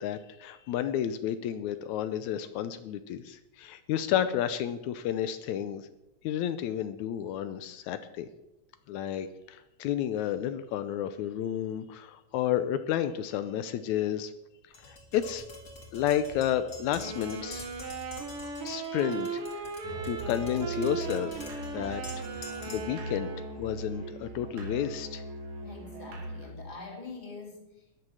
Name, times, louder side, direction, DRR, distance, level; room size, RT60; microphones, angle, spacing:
voice 1, 0.0-5.9 6.2-8.3 8.9-14.3 14.8-15.4 15.9-17.7 18.6-19.6 20.0-21.5 21.7-22.0 22.4-23.3 23.6-25.2, left 10 dB, 85° left, 11 dB, 2.1 m, -31 dB
Tap, 14.7-23.0, left 2 dB, 35° left, 3.0 m, -47 dB
sound 1, 16.9-23.7, right 4 dB, 55° right, 2.6 m, -37 dB
Musical instrument, 19.8-26.6, right 2 dB, 85° right, 4.0 m, -40 dB
voice 2, 25.6-28.1, left 3 dB, 15° left, 1 dB, 2.8 m, -45 dB
14.0 x 10.5 x 6.4 m, 0.92 s
omnidirectional pair, 3.3 m